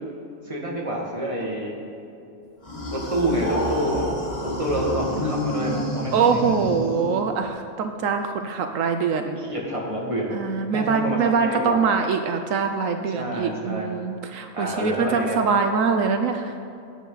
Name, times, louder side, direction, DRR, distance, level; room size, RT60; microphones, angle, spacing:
voice 1, 0.4-1.7 2.9-4.1 4.4-6.5 9.4-10.3 10.7-11.8 13.1-13.9 14.5-15.4, right 1 dB, 25° right, -2 dB, 2.2 m, -28 dB
sound 1, 2.6-7.4, equal, 30° left, 1.7 m, -29 dB
voice 2, 6.1-9.4 10.3-16.5, right 5 dB, 75° right, 6 dB, 1.1 m, -23 dB
17.5 x 9.2 x 4.0 m, 2.7 s
omnidirectional pair, 1.4 m